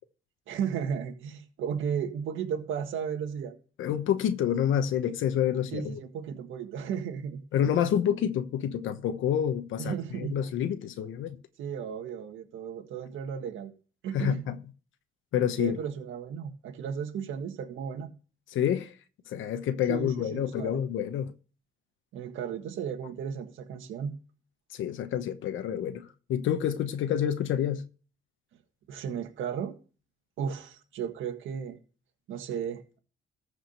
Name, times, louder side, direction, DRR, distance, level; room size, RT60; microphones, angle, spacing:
voice 1, 0.5-3.5 5.7-7.4 9.8-10.4 11.6-13.7 14.0-14.5 15.6-18.1 19.9-20.8 22.1-24.1 28.9-29.7 30.4-31.8 32.3-33.0, right 7 dB, 80° right, 1.7 m, -34 dB
voice 2, 3.8-6.0 7.5-11.4 14.1-14.6 15.3-15.8 18.5-18.9 19.3-21.3 24.7-27.8, left 9 dB, 80° left, 1.1 m, -28 dB
14.0 x 5.1 x 6.6 m
cardioid pair, 90°, 20 cm